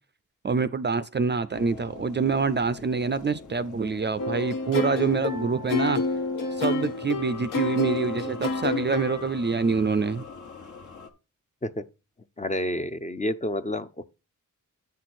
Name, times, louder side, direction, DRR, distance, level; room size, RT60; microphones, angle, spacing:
voice 1, 0.4-6.0 6.6-10.3, right 5 dB, 35° right, 0.4 m, -26 dB
sound 1, 1.5-11.1, left 6 dB, 65° left, 1.3 m, -44 dB
sound 2, 4.2-9.3, left 3 dB, 80° left, 1.0 m, -29 dB
voice 2, 12.4-14.0, left 1 dB, 20° left, 0.5 m, -29 dB
8.2 x 6.2 x 4.2 m
wide cardioid pair, 110°, 32 cm